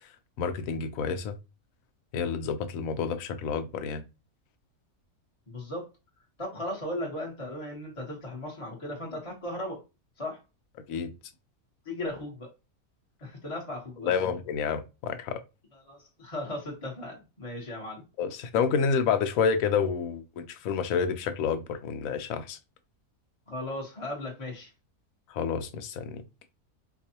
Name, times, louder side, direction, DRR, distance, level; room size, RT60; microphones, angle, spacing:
voice 1, 0.4-1.4 2.1-4.0 10.9-11.1 14.0-15.4 18.2-22.6 25.3-26.2, left 6 dB, 70° left, 1.0 m, -29 dB
voice 2, 5.5-5.8 6.4-9.8 10.2-10.4 11.8-12.5 13.2-14.3 15.9-18.0 23.5-24.7, left 1 dB, 25° left, 1.1 m, -36 dB
4.5 x 2.4 x 2.8 m
omnidirectional pair, 1.5 m